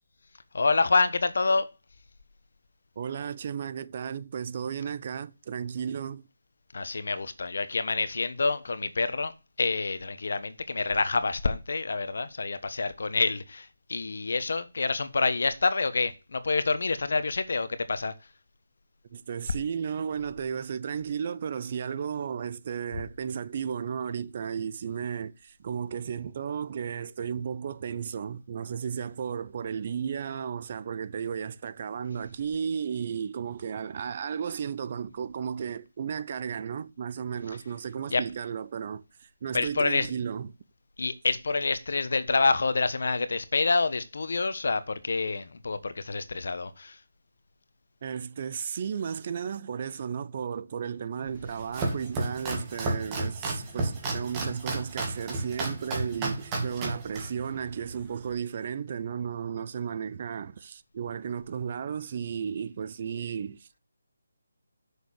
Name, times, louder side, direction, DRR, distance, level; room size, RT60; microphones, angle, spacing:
voice 1, 0.5-1.7 6.7-9.3 9.6-18.1 38.1-38.2 39.5-40.1 41.0-47.0, left 3 dB, 65° left, 1.2 m, -27 dB
voice 2, 3.0-6.2 19.1-40.6 48.0-63.7, right 7 dB, 35° right, 0.6 m, -34 dB
Domestic sounds home sounds, 51.4-58.3, right 2 dB, 15° right, 2.4 m, -33 dB
7.1 x 6.6 x 6.5 m
figure-of-eight pair, 165°, 0 cm